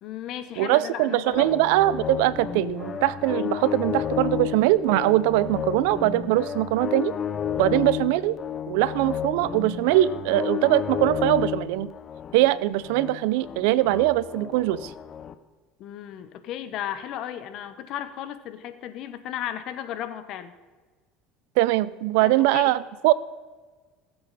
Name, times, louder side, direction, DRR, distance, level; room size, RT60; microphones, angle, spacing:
voice 1, 0.0-1.5 15.8-20.5 22.2-22.7, left 11 dB, 60° left, 11 dB, 1.1 m, -35 dB
voice 2, 0.6-7.1 7.6-8.4 8.7-11.9 12.3-14.9 21.6-23.1, right 16 dB, 80° right, 18 dB, 0.5 m, -22 dB
sound 1, 1.3-15.3, left 9 dB, 35° left, 0.8 m, -32 dB
18.5 x 7.8 x 4.1 m, 1.4 s
supercardioid pair, 110°, 0 cm